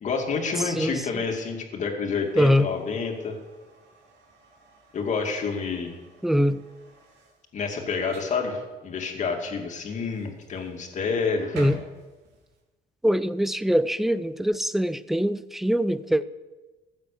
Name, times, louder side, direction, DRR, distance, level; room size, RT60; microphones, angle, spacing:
voice 1, 0.0-3.4 4.9-6.0 7.5-11.6, left 5 dB, 45° left, 2.3 m, -28 dB
sound 1, 2.2-12.6, right 3 dB, 85° right, 3.4 m, -49 dB
voice 2, 6.2-6.6 11.5-11.8 13.0-16.2, equal, ahead, 0.5 m, -22 dB
15.0 x 7.4 x 6.8 m
cardioid pair, 110°, 17 cm